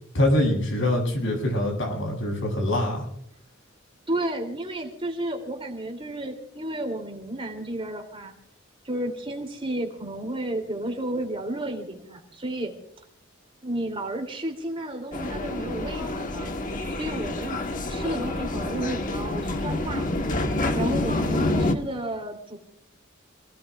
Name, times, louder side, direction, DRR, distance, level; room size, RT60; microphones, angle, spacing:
voice 1, 0.1-3.1, left 1 dB, 70° left, 0 dB, 7.5 m, -24 dB
voice 2, 4.1-8.3 8.8-12.7 13.6-16.5 16.9-17.6 17.9-20.1 20.7-22.6, right 1 dB, 30° right, 3 dB, 3.0 m, -32 dB
sound 1, 15.1-21.7, left 2 dB, 40° left, 1.3 m, -27 dB
28.5 x 18.5 x 2.4 m, 0.69 s
head